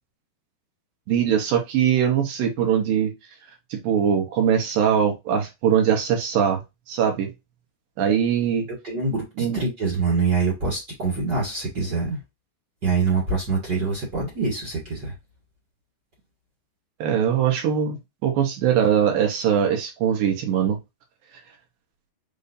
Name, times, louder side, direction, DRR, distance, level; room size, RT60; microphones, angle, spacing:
voice 1, 1.1-3.1 3.7-6.6 6.9-7.3 8.0-8.7 9.4-9.6 17.0-18.0 18.2-20.8, right 8 dB, 70° right, 2.6 m, -21 dB
voice 2, 8.8-12.2 12.8-15.1, right 4 dB, 85° right, 0.9 m, -25 dB
6.8 x 2.6 x 2.6 m
omnidirectional pair, 4.5 m